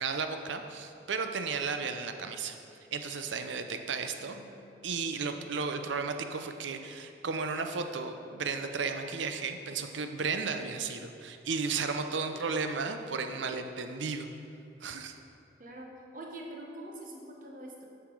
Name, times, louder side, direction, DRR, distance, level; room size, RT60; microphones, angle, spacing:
voice 1, 0.0-2.6 2.9-4.4 4.8-14.3 14.8-15.2, right 4 dB, 85° right, 7 dB, 0.6 m, -34 dB
voice 2, 4.2-4.5 12.3-12.5 15.6-17.8, right 1 dB, 45° right, -1 dB, 1.1 m, -45 dB
8.3 x 5.8 x 4.6 m, 2.6 s
head